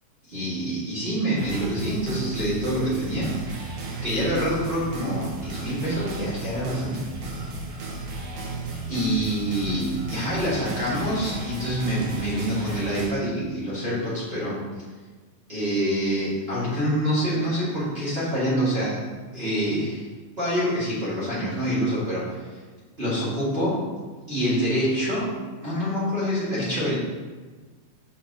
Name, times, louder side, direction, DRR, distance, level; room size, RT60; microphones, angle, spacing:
voice 1, 0.3-3.7 4.0-7.3 8.7-14.6 15.5-19.0 19.3-20.1 20.4-22.6 23.0-23.9 24.3-26.9, equal, 20° right, -10 dB, 1.9 m, -26 dB
sound 1, 1.4-13.1, right 2 dB, 85° right, 3.1 m, -34 dB
7.5 x 6.3 x 3.0 m, 1.3 s
omnidirectional pair, 4.3 m